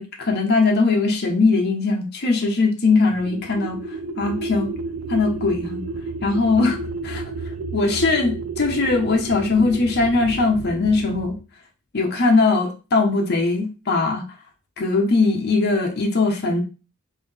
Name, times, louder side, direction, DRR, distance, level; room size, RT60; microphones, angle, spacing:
voice 1, 0.0-3.8 4.2-4.7 5.1-5.8 6.2-6.8 7.0-7.2 7.7-11.3 11.9-14.2 14.8-16.6, left 3 dB, 50° left, 1 dB, 0.8 m, -20 dB
sound 1, 3.1-11.4, right 3 dB, 85° right, 0.4 m, -32 dB
3.7 x 2.7 x 3.4 m, 0.33 s
head